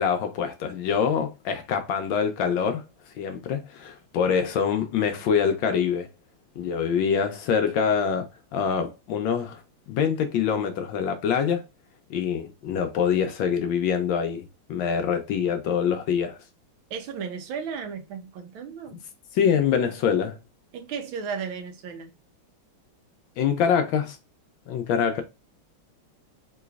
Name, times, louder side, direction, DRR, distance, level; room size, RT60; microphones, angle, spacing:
voice 1, 0.0-2.8 3.2-6.1 6.6-8.3 8.5-9.6 9.9-11.6 12.1-16.4 18.9-19.0 19.3-20.4 23.4-24.2 24.7-25.2, left 7 dB, 75° left, 1.2 m, -25 dB
voice 2, 16.9-19.0 20.7-22.1, right 6 dB, 75° right, 1.5 m, -34 dB
3.8 x 3.0 x 2.3 m
omnidirectional pair, 2.4 m